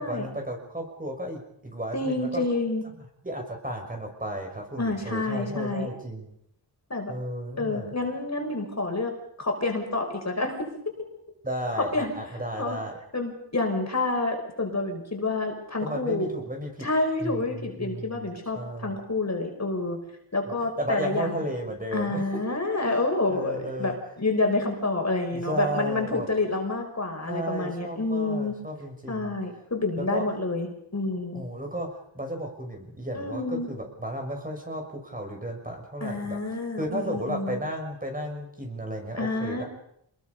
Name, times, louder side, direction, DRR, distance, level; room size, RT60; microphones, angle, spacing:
voice 1, 0.0-2.4 3.0-6.4 7.1-7.9 11.4-12.9 15.8-16.9 17.2-19.0 20.8-22.2 22.7-24.0 25.3-26.3 27.2-29.4 29.9-30.2 31.3-36.4 36.8-39.6, right 1 dB, 20° right, 2 dB, 6.3 m, -34 dB
voice 2, 1.9-2.8 4.8-5.9 6.9-7.1 7.6-9.1 9.4-10.7 11.8-12.1 12.6-12.8 13.1-16.3 16.8-20.0 20.3-21.4 21.9-28.6 29.1-31.4 33.1-33.7 36.0-37.6 39.2-39.6, left 2 dB, 35° left, 3 dB, 5.4 m, -28 dB
28.0 x 21.5 x 5.5 m, 0.72 s
wide cardioid pair, 85°, 43 cm